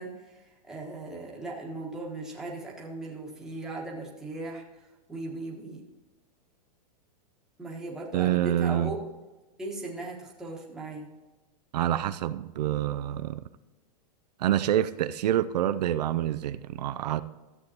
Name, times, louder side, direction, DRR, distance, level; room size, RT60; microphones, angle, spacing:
voice 1, 0.0-4.6 5.1-5.8 7.6-9.0 9.6-11.1, right 2 dB, 5° right, -4 dB, 1.3 m, -38 dB
voice 2, 8.1-8.9 11.7-13.4 14.4-17.2, right 11 dB, 75° right, 11 dB, 0.5 m, -27 dB
14.0 x 8.0 x 2.8 m, 1.1 s
supercardioid pair, 165°, 21 cm